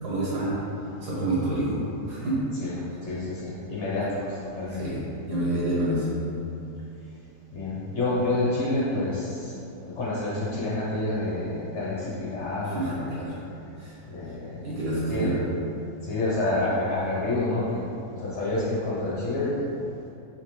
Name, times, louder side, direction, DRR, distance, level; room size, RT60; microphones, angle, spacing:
voice 1, 0.0-0.5 1.0-1.8 2.1-2.3 3.3-3.4 4.7-5.0 5.3-6.1 12.6-13.3 13.8-13.9 14.6-15.4, right 1 dB, 80° right, -8 dB, 1.9 m, -28 dB
voice 2, 3.0-4.8 7.5-13.1 14.1-14.7 15.1-15.4 16.0-17.8 18.1-19.6, left 2 dB, 50° left, -7 dB, 1.0 m, -28 dB
3.5 x 3.3 x 3.5 m, 2.7 s
omnidirectional pair, 1.7 m